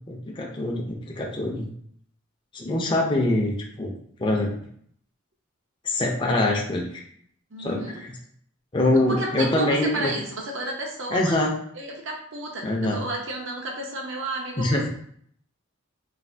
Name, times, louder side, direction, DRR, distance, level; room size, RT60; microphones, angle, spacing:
voice 1, 0.1-1.7 2.5-3.9 4.2-4.5 5.8-7.0 7.6-8.1 8.7-10.1 11.1-11.5 12.6-13.0 14.6-14.9, left 1 dB, 25° left, -1 dB, 0.4 m, -24 dB
voice 2, 7.5-8.0 9.1-11.4 11.7-14.9, right 2 dB, 70° right, 0 dB, 0.7 m, -32 dB
3.2 x 2.4 x 2.6 m, 0.64 s
head